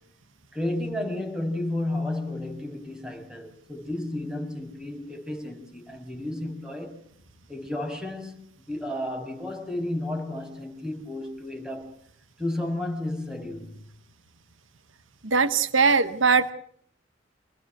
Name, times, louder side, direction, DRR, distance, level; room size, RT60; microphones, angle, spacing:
voice 1, 0.5-7.0 7.5-11.9 12.4-13.8, left 1 dB, 5° right, 6.8 m, -32 dB
voice 2, 15.2-16.5, right 5 dB, 75° right, 1.2 m, -21 dB
28.5 x 19.5 x 7.9 m
head